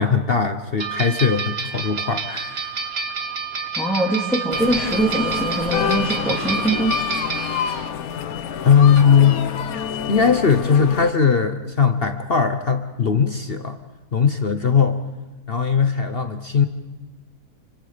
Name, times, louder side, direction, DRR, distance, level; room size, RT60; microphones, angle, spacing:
voice 1, 0.0-2.8 8.6-9.4 10.1-13.8 14.1-15.0 15.5-16.7, left 6 dB, 45° left, 7 dB, 1.0 m, -19 dB
sound 1, 0.8-7.9, right 5 dB, 40° right, 1.4 m, -28 dB
voice 2, 3.8-6.9 7.6-7.7, right 1 dB, ahead, -3 dB, 2.4 m, -23 dB
sound 2, 4.5-11.1, left 8 dB, 65° left, 1.3 m, -27 dB
Drum, 9.0-10.2, equal, 80° right, 2.7 m, -40 dB
29.0 x 25.0 x 5.1 m, 1.2 s
omnidirectional pair, 1.7 m